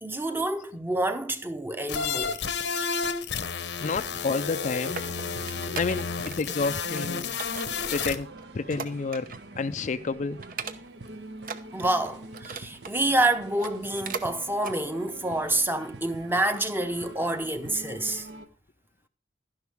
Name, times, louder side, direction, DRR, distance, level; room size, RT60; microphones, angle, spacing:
voice 1, 0.0-2.4 11.7-18.3, right 1 dB, 10° right, 0.8 m, -28 dB
sound 1, 1.9-8.2, left 5 dB, 80° left, 1.0 m, -31 dB
voice 2, 3.8-5.1 5.7-7.4 7.9-10.4, left 4 dB, 45° left, 0.4 m, -30 dB
sound 2, 3.8-18.4, right 2 dB, 70° right, 1.1 m, -45 dB
sound 3, 4.9-6.4 6.6-7.0 7.4-9.5 9.9-10.0 10.4-11.1 11.4-13.0 13.5-14.3 14.6-14.8 15.3-15.4, right 5 dB, 50° right, 0.8 m, -39 dB
11.5 x 10.5 x 3.5 m
head